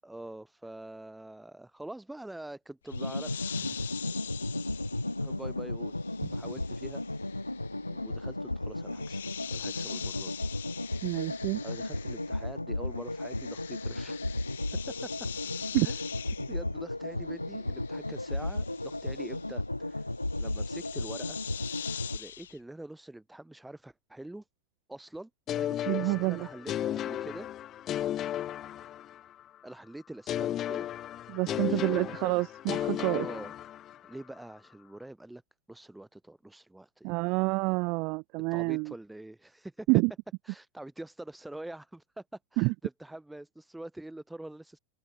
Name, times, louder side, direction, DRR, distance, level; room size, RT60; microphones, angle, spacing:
voice 1, 0.0-3.5 5.2-5.9 6.3-7.0 7.9-9.2 9.5-10.4 11.6-14.3 14.7-15.1 15.8-16.1 16.5-20.1 20.4-21.4 22.1-24.5 24.9-27.5 29.6-30.9 31.4-32.4 33.2-33.5 34.0-35.4 35.7-37.3 38.5-39.9 40.4-42.2 42.5-44.8, right 1 dB, 5° right, 7.0 m, -45 dB
sound 1, 2.9-22.2, left 1 dB, 85° left, 4.9 m, -35 dB
sound 2, 2.9-12.6 12.8-22.6, left 9 dB, 65° left, 3.6 m, -44 dB
voice 2, 11.0-11.6 15.7-15.9 25.9-26.5 31.3-33.3 37.0-38.9 39.9-40.1 42.6-42.7, right 28 dB, 45° right, 1.2 m, -28 dB
sound 3, 25.5-29.4 30.3-34.1, left 11 dB, 30° left, 1.7 m, -34 dB
open air
figure-of-eight pair, 90°, 0 cm